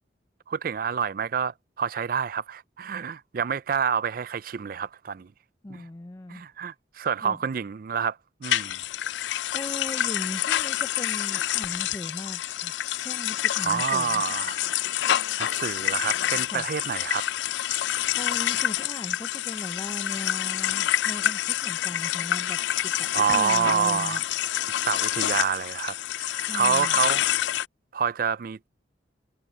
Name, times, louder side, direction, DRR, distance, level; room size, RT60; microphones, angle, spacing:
voice 1, 0.5-5.3 5.7-5.8 6.3-8.8 13.6-14.6 15.4-17.3 17.7-17.8 23.1-24.2 24.9-27.2 27.9-28.7, right 7 dB, 50° right, 0.4 m, -28 dB
voice 2, 5.6-6.4 7.2-7.4 9.5-12.7 13.0-14.2 16.4-16.7 18.1-24.2 26.3-27.0, left 1 dB, 20° left, 0.5 m, -38 dB
sound 1, 8.4-27.7, left 12 dB, 80° left, 0.4 m, -27 dB
head